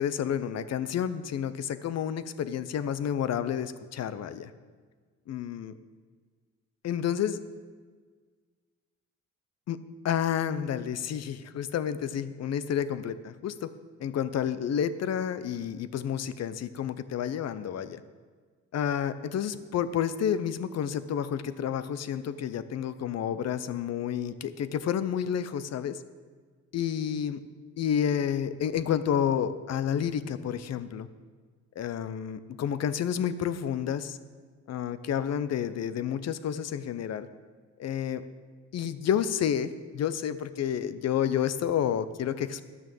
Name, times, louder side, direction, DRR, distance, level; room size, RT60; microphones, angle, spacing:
voice 1, 0.0-4.5 5.3-5.7 6.8-7.4 9.7-9.8 10.0-13.7 14.0-18.0 18.7-26.0 26.7-27.4 27.8-31.1 31.8-34.2 34.7-37.3 37.8-38.3 38.7-42.6, left 9 dB, 60° left, 13 dB, 0.7 m, -30 dB
11.0 x 6.3 x 7.0 m, 1.5 s
cardioid pair, 90°, 30 cm